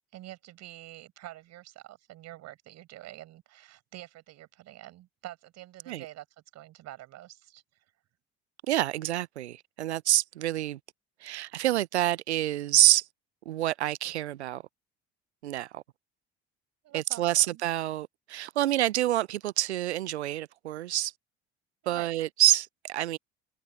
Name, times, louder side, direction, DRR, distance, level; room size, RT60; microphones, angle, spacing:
voice 1, 0.1-6.3 6.5-7.6 16.8-17.2 17.5-17.6 21.8-22.1, right 15 dB, 55° right, 5.4 m, -46 dB
voice 2, 8.7-10.8 11.2-13.1 13.5-14.6 15.4-15.8 16.9-21.1 21.9-23.2, right 14 dB, 80° right, 0.7 m, -27 dB
figure-of-eight pair, 60°, 33 cm